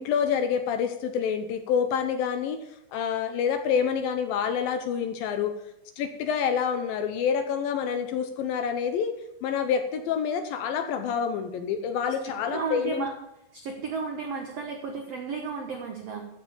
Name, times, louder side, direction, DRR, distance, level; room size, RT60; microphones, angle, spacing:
voice 1, 0.0-2.6 2.9-5.5 6.0-9.2 9.4-13.1, left 7 dB, 80° left, 7 dB, 2.3 m, -27 dB
voice 2, 12.2-13.1 13.5-16.3, right 4 dB, 85° right, 3 dB, 1.4 m, -33 dB
14.0 x 5.2 x 7.1 m, 0.86 s
omnidirectional pair, 4.7 m